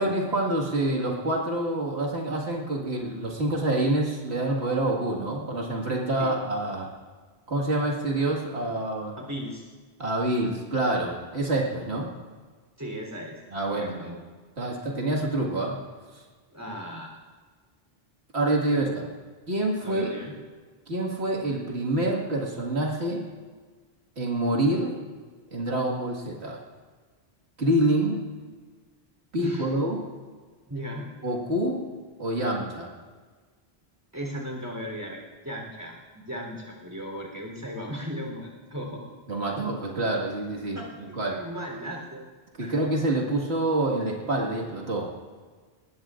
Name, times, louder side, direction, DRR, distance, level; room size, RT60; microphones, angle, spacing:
voice 1, 0.0-6.9 7.5-9.2 10.0-12.1 13.5-14.2 14.6-15.7 16.1-16.2 18.3-18.9 19.5-20.1 20.9-23.2 24.2-24.9 25.5-26.6 27.6-28.2 29.3-30.0 31.2-31.8 32.2-32.9 39.3-40.8 41.1-41.4 42.6-45.1, right 1 dB, 90° right, -2 dB, 2.2 m, -27 dB
voice 2, 9.2-9.7 12.8-13.4 13.7-14.1 16.5-17.1 18.7-18.9 19.8-20.3 29.4-29.7 30.7-31.1 34.1-39.1 40.7-40.9 41.3-42.2 42.6-42.9, equal, 20° right, -1 dB, 3.6 m, -36 dB
21.5 x 19.0 x 2.5 m, 1.5 s
omnidirectional pair, 1.1 m